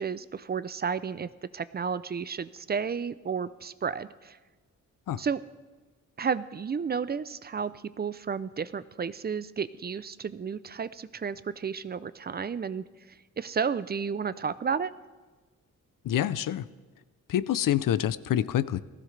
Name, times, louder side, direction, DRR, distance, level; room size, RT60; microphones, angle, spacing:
voice 1, 0.0-4.4 5.2-5.4 6.2-14.9, right 6 dB, 30° right, 15 dB, 0.4 m, -32 dB
voice 2, 16.0-16.7 17.3-18.8, left 11 dB, 85° left, 17 dB, 0.6 m, -27 dB
19.0 x 15.5 x 3.3 m, 1.3 s
wide cardioid pair, 125°, 32 cm